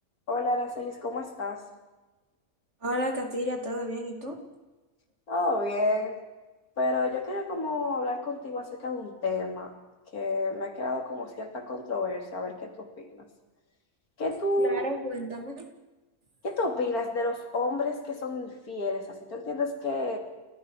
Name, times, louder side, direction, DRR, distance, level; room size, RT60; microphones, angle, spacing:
voice 1, 0.3-1.6 5.3-6.2 6.8-9.7 10.1-13.3 14.2-14.8 16.4-20.2, left 2 dB, 90° left, 4 dB, 3.4 m, -30 dB
voice 2, 2.8-4.4 14.6-15.7, equal, 50° right, 5 dB, 3.0 m, -32 dB
30.0 x 14.5 x 6.3 m, 1.2 s
omnidirectional pair, 1.5 m